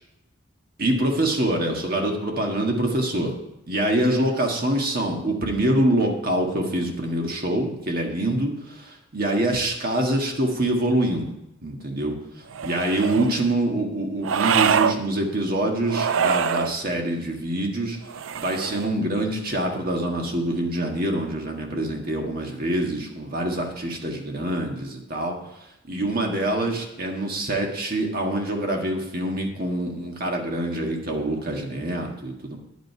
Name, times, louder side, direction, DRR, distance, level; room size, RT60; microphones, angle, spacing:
voice 1, 0.8-3.3 3.7-11.3 11.6-12.1 12.6-18.0 18.3-25.4 25.9-32.6, right 1 dB, 45° right, 1 dB, 1.7 m, -25 dB
sound 1, 12.5-13.3 14.2-15.0 15.9-16.7 18.1-18.9, right 7 dB, 80° right, 0.5 m, -24 dB
10.0 x 8.5 x 4.6 m, 0.88 s
head